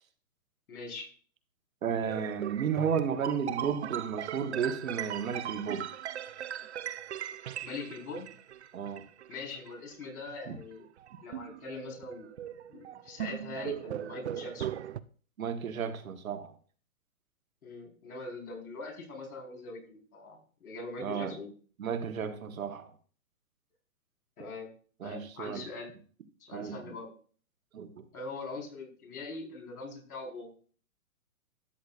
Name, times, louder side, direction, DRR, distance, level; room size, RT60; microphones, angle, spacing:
voice 1, 0.7-1.1 7.6-8.3 9.3-10.9 11.2-12.3 12.7-14.7 17.6-21.5 24.4-24.7 25.0-25.9 26.4-27.1 28.1-30.5, left 3 dB, 80° left, 1 dB, 4.5 m, -42 dB
voice 2, 1.8-5.9 8.7-9.0 10.5-10.6 15.4-16.5 21.0-21.4 21.8-22.9 25.0-25.7 26.5-26.9 27.7-28.0, right 7 dB, 70° right, 8 dB, 1.4 m, -33 dB
sound 1, 2.1-10.4 11.0-15.0, right 10 dB, 50° right, 0.5 m, -39 dB
13.0 x 8.5 x 2.5 m, 0.42 s
hypercardioid pair, 165°, 43 cm